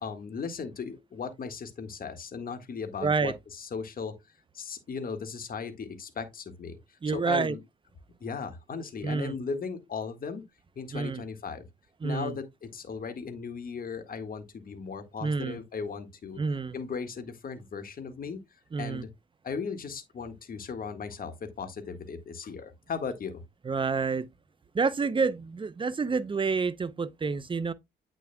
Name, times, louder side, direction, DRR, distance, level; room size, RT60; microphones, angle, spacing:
voice 1, 0.0-4.1 4.5-7.6 8.2-10.4 10.8-11.7 12.0-16.4 16.7-18.4 18.8-19.1 19.4-23.4, left 5 dB, 45° left, 1.7 m, -37 dB
voice 2, 3.0-3.3 7.0-7.6 9.0-9.4 10.9-11.2 12.0-12.4 15.2-15.6 16.4-16.7 18.7-19.0 23.7-24.3 24.7-27.7, right 4 dB, 25° right, 0.6 m, -28 dB
8.6 x 6.2 x 2.2 m
cardioid pair, 90°, 20 cm